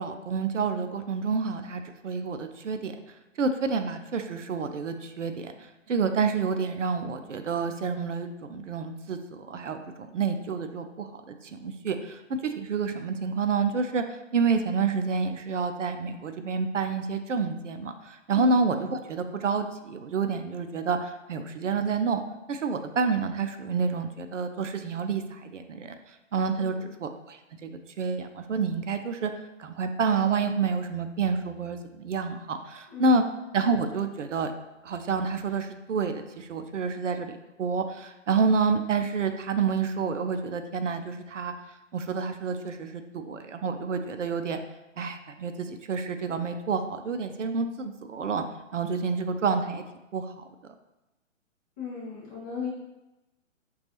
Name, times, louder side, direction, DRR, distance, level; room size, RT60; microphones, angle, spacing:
voice 1, 0.0-2.9 3.4-5.5 5.9-22.2 22.5-25.9 26.3-26.7 27.0-27.7 28.0-29.3 29.6-33.2 33.5-34.5 34.8-41.5 41.9-44.6 45.0-48.4 48.7-49.8 50.1-50.5, right 5 dB, 70° right, 8 dB, 0.5 m, -28 dB
voice 2, 26.6-26.9 32.9-33.1 51.8-52.7, left 6 dB, 15° left, -6 dB, 0.6 m, -37 dB
5.2 x 2.3 x 2.9 m, 0.98 s
figure-of-eight pair, 125°, 38 cm